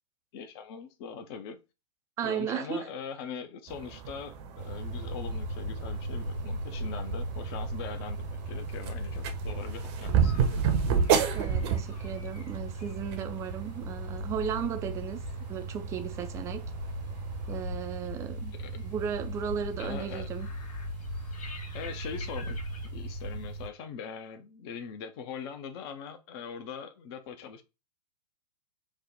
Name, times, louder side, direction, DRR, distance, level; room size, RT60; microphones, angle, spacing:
voice 1, 0.3-1.6 2.2-10.3 18.6-18.7 19.8-20.3 21.7-22.6 22.8-27.6, left 6 dB, 40° left, 0.6 m, -41 dB
voice 2, 2.2-2.9 11.3-15.2 15.5-16.7 17.5-18.5 18.8-20.5, right 8 dB, 15° right, 0.3 m, -35 dB
sound 1, 3.7-17.6, right 7 dB, 40° right, 0.7 m, -33 dB
sound 2, 4.6-23.7, right 1 dB, 80° right, 1.1 m, -37 dB
sound 3, 10.0-22.9, left 4 dB, 60° left, 1.0 m, -53 dB
3.3 x 2.1 x 3.8 m
figure-of-eight pair, 105°, 21 cm